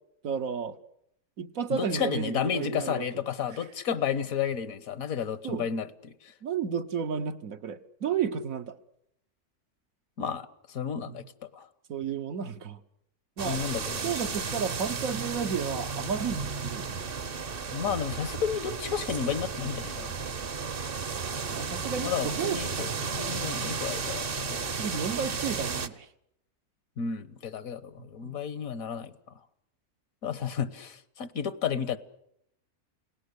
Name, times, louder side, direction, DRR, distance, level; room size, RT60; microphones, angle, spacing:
voice 1, 0.2-0.8 1.4-3.0 5.4-5.7 6.4-8.8 11.1-11.3 11.9-12.8 13.4-13.6 14.0-17.0 21.5-22.9 24.6-26.1 28.0-28.4, right 7 dB, 65° right, 8 dB, 1.5 m, -32 dB
voice 2, 1.7-6.3 10.2-11.7 13.4-14.1 17.7-20.2 22.0-24.7 27.0-29.1 30.2-32.0, left 7 dB, 70° left, 16 dB, 1.6 m, -32 dB
sound 1, 13.4-25.9, right 5 dB, 40° right, 1.2 m, -34 dB
29.5 x 18.0 x 8.2 m, 0.77 s
omnidirectional pair, 1.6 m